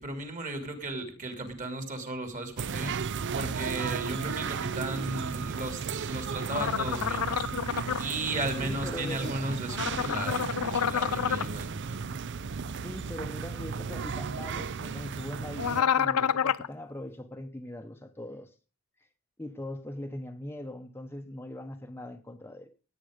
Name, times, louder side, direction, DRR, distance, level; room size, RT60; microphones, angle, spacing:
voice 1, 0.0-3.0 3.3-7.3 8.0-11.8, right 2 dB, 35° right, 2.9 m, -35 dB
sound 1, 2.6-15.8, right 5 dB, 55° right, 0.5 m, -35 dB
sound 2, 6.5-8.0 9.7-11.5 15.6-16.7, left 8 dB, 80° left, 0.5 m, -28 dB
voice 2, 8.6-9.3 12.8-18.5 19.4-22.7, left 1 dB, 10° left, 0.9 m, -41 dB
17.0 x 9.0 x 5.1 m
head